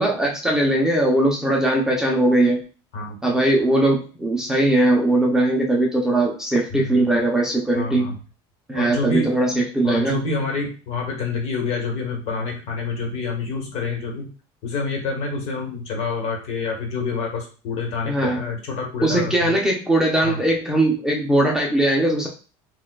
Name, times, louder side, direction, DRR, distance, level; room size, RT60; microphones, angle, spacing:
voice 1, 0.0-2.6 3.2-8.2 8.7-10.2 18.1-18.4 19.0-22.3, right 1 dB, 5° right, -1 dB, 0.5 m, -20 dB
voice 2, 6.7-7.0 7.7-8.1 8.7-9.3 9.8-14.3 14.6-19.6 20.2-20.4, left 4 dB, 55° left, 2 dB, 1.2 m, -27 dB
4.3 x 2.3 x 2.2 m, 0.36 s
cardioid pair, 145°, 13 cm